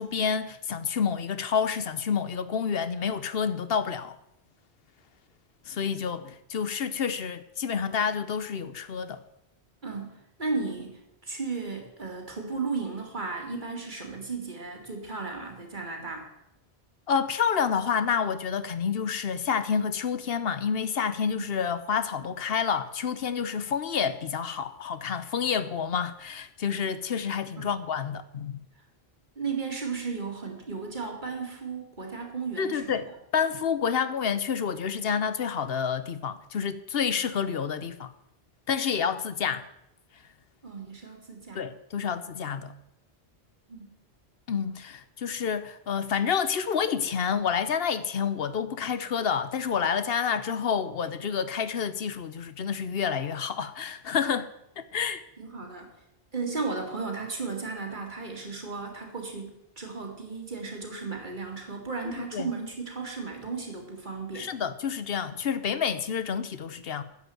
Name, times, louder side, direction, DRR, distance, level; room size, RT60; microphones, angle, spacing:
voice 1, 0.0-4.2 5.7-9.2 17.1-28.6 32.6-33.0 33.3-38.1 38.7-39.6 41.5-42.8 44.5-54.5 54.8-55.2 62.1-62.5 64.3-67.0, left 7 dB, 70° left, 1.0 m, -29 dB
voice 2, 9.8-16.3 21.3-21.5 27.6-27.7 29.4-33.1 40.6-41.7 43.7-44.0 55.4-55.9 56.3-64.5, right 4 dB, 50° right, 2.5 m, -35 dB
10.5 x 7.9 x 7.7 m
omnidirectional pair, 1.1 m